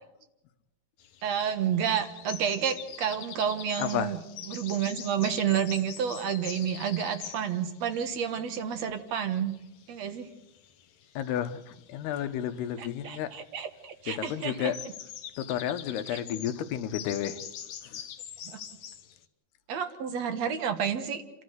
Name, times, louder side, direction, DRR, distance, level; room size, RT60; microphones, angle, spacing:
sound 1, 1.0-19.2, left 9 dB, 65° left, 1.8 m, -45 dB
voice 1, 1.2-4.2 4.5-9.6 9.9-10.3 12.8-14.7 16.1-16.2 19.7-21.2, right 8 dB, 60° right, 8 dB, 2.0 m, -30 dB
voice 2, 3.8-4.1 11.2-13.3 14.1-14.8 15.4-17.4 17.8-18.0, left 10 dB, 80° left, 9 dB, 3.1 m, -32 dB
29.0 x 13.5 x 8.0 m, 0.90 s
omnidirectional pair, 4.6 m